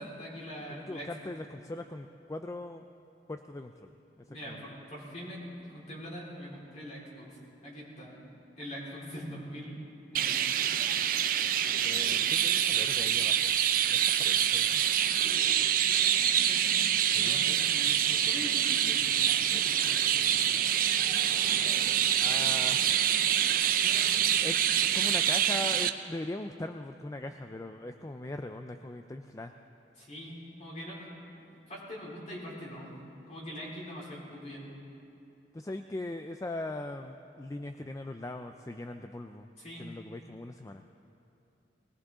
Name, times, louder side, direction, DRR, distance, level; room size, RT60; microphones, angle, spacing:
voice 1, 0.0-1.3 4.3-7.3 7.6-8.2 8.6-9.8 10.1-10.4 15.4-20.6 23.8-24.4 30.0-31.1 31.7-32.9 33.3-34.6 39.6-39.9, equal, 40° left, -5 dB, 4.2 m, -43 dB
voice 2, 0.7-2.8 3.3-3.9 4.2-4.7 11.8-13.6 13.9-14.8 17.1-17.4 19.5-19.7 22.2-23.0 24.4-24.6 24.9-29.5 35.5-39.5 39.8-40.8, left 2 dB, 20° left, 7 dB, 0.4 m, -40 dB
Chirp tweet, 10.1-25.9, right 10 dB, 50° right, 0.5 m, -26 dB
20.0 x 19.5 x 3.7 m, 2.8 s
head